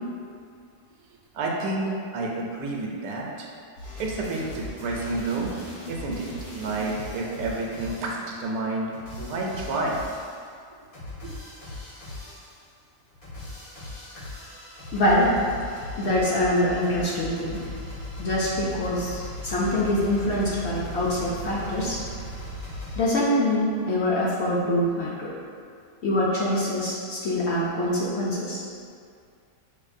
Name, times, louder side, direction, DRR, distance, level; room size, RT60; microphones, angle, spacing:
voice 1, 1.3-3.5 4.0-5.5 5.9-6.3 6.5-10.0, right 2 dB, 75° right, -1 dB, 1.0 m, -29 dB
sound 1, 3.8-8.3 8.9-10.4 10.9-12.6 13.1-23.0, left 1 dB, 85° left, 2.1 m, -38 dB
voice 2, 14.9-15.3 16.0-17.6 18.2-22.0 23.0-25.3 26.0-28.6, left 1 dB, 65° left, -6 dB, 0.7 m, -24 dB
5.7 x 2.3 x 2.5 m, 2.3 s
omnidirectional pair, 1.6 m